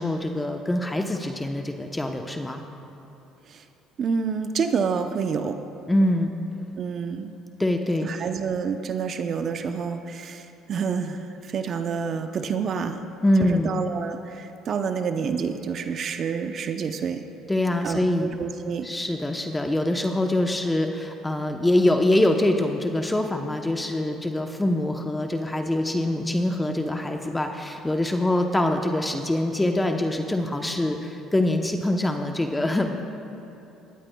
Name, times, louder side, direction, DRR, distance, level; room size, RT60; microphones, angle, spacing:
voice 1, 0.0-2.6 5.9-6.3 7.6-8.1 13.2-13.7 17.5-18.3 18.8-33.0, left 1 dB, 15° left, 4 dB, 0.8 m, -24 dB
voice 2, 4.0-5.6 6.8-7.3 8.0-13.0 13.4-17.2 17.8-18.9, right 6 dB, 50° right, 8 dB, 0.7 m, -28 dB
18.5 x 15.0 x 2.3 m, 3.0 s
hypercardioid pair, 70°, 0 cm